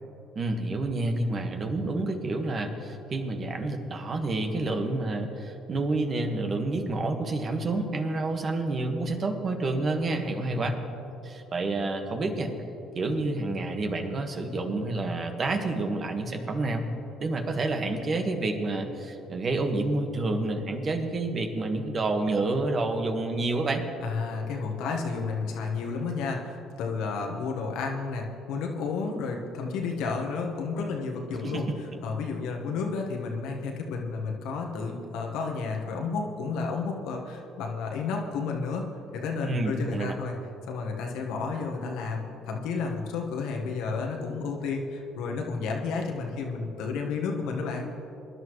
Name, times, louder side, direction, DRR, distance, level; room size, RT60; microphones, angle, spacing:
voice 1, 0.3-10.8 11.2-12.5 12.9-16.8 17.2-23.8 31.4-31.6 39.4-40.1, right 2 dB, 45° right, 5 dB, 1.6 m, -29 dB
voice 2, 10.3-10.7 24.0-31.7 32.0-38.9 39.1-40.3 40.7-47.9, left 4 dB, 70° left, 2 dB, 1.5 m, -31 dB
22.0 x 11.0 x 3.2 m, 3.0 s
hypercardioid pair, 60°, 0 cm